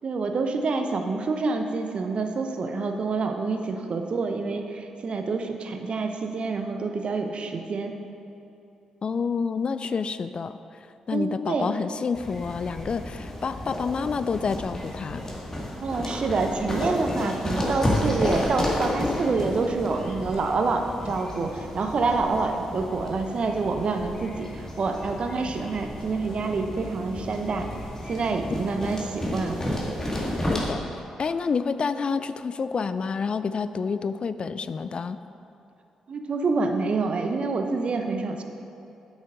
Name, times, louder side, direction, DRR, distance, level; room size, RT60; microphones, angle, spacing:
voice 1, 0.0-7.9 11.1-11.7 15.8-27.7 28.1-29.7 36.1-38.4, right 3 dB, 55° right, 5 dB, 0.8 m, -27 dB
voice 2, 9.0-10.6 11.1-15.2 30.5-30.8 31.2-35.2, left 5 dB, 50° left, 12 dB, 0.3 m, -28 dB
sound 1, 12.1-30.7, left 1 dB, 25° left, 2.1 m, -32 dB
8.1 x 6.3 x 5.0 m, 2.8 s
hypercardioid pair, 45°, 2 cm